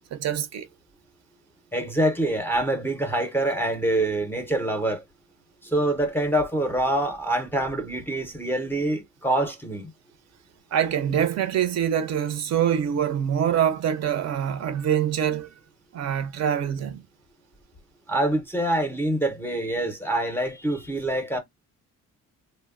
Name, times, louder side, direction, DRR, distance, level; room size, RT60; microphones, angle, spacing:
voice 1, 0.1-0.7 10.7-15.5 15.9-17.0, right 9 dB, 55° right, 0.5 m, -25 dB
voice 2, 1.7-5.0 5.6-9.9 18.1-21.4, right 1 dB, 5° left, 0.5 m, -25 dB
3.0 x 2.0 x 2.3 m
cardioid pair, 130°, 32 cm